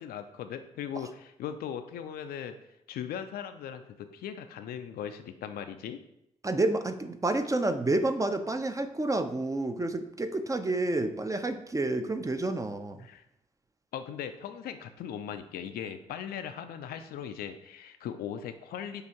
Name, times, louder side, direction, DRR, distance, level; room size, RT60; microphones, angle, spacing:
voice 1, 0.0-2.6 2.9-6.0 13.0-13.2 13.9-19.1, left 8 dB, 65° left, 8 dB, 0.4 m, -39 dB
voice 2, 6.4-13.0, right 2 dB, 20° right, 8 dB, 0.5 m, -29 dB
6.4 x 2.5 x 2.8 m, 0.80 s
hypercardioid pair, 40°, 17 cm